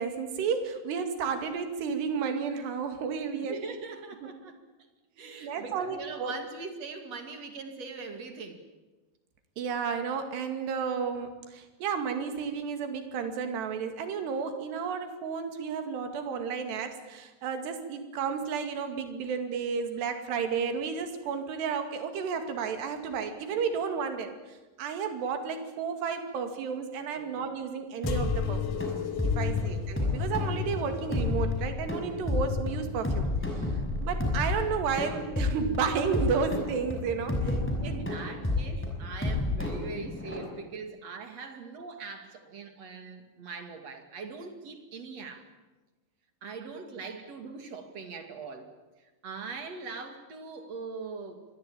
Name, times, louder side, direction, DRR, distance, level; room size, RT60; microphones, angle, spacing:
voice 1, 0.0-3.6 4.2-4.3 5.2-6.3 9.6-28.9 29.2-33.7 34.0-37.5 37.8-38.0 43.0-43.1, right 6 dB, 70° right, 7 dB, 4.3 m, -32 dB
voice 2, 3.3-4.6 5.2-8.6 27.2-27.4 29.4-30.3 33.7-33.8 37.4-45.4 46.4-48.7 49.2-51.4, right 4 dB, 45° right, 6 dB, 2.7 m, -41 dB
sound 1, 28.0-40.4, left 2 dB, 5° left, 5.3 m, -31 dB
sound 2, 28.1-35.3 35.8-36.6 37.3-37.9 38.8-38.9, left 8 dB, 80° left, 1.9 m, -36 dB
26.0 x 21.0 x 8.8 m, 1.2 s
omnidirectional pair, 5.2 m